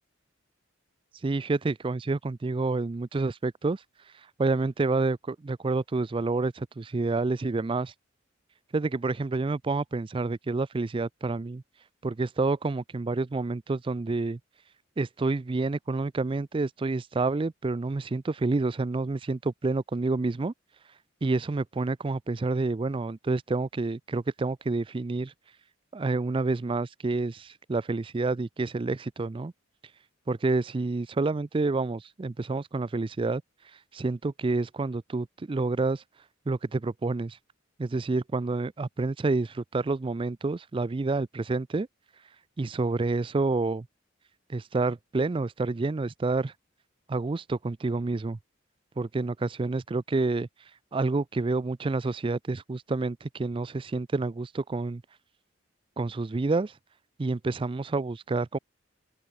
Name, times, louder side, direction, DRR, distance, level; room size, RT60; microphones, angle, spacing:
voice 1, 1.2-3.8 4.4-7.9 8.7-11.6 12.0-14.4 15.0-20.5 21.2-25.3 25.9-29.5 30.3-33.4 33.9-36.0 36.5-37.4 37.8-41.9 42.6-43.9 44.5-46.5 47.1-48.4 49.0-50.5 50.9-55.0 56.0-56.7 57.2-58.6, right 3 dB, 25° right, 0.4 m, -28 dB
open air
head